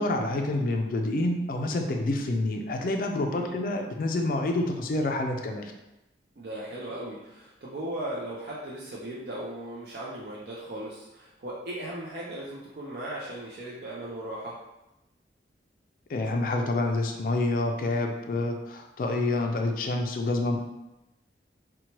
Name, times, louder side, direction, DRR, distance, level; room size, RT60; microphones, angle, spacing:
voice 1, 0.0-5.7 16.1-20.6, left 2 dB, 50° left, 3 dB, 0.3 m, -28 dB
voice 2, 6.4-14.6, right 1 dB, 60° right, -6 dB, 0.4 m, -37 dB
2.8 x 2.1 x 2.9 m, 0.95 s
head